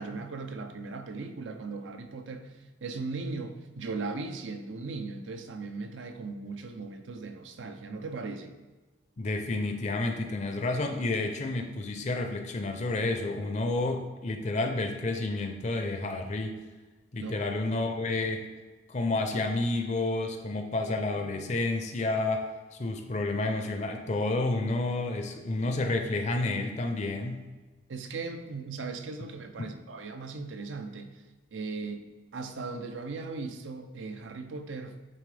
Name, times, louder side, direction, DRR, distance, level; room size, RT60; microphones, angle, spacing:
voice 1, 0.0-8.6 17.2-17.5 27.9-31.2 31.5-32.1 32.3-35.0, right 3 dB, 85° right, 0.6 m, -38 dB
voice 2, 9.2-16.6 17.1-18.5 18.9-27.4 29.6-29.7, left 2 dB, 40° left, 0.5 m, -30 dB
8.5 x 3.8 x 3.3 m
head